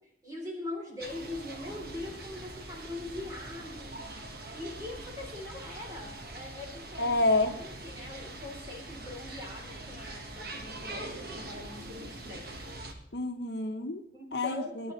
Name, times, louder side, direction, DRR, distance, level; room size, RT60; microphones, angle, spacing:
voice 1, 0.2-3.9 4.5-7.2 7.6-12.6 14.1-14.9, left 2 dB, 20° right, -1 dB, 3.3 m, -42 dB
sound 1, 1.0-12.9, right 2 dB, 60° right, 1.4 m, -43 dB
voice 2, 7.0-7.6 13.1-14.0 14.3-14.9, left 2 dB, 70° left, 6 dB, 0.9 m, -28 dB
19.0 x 9.4 x 3.1 m, 0.68 s
head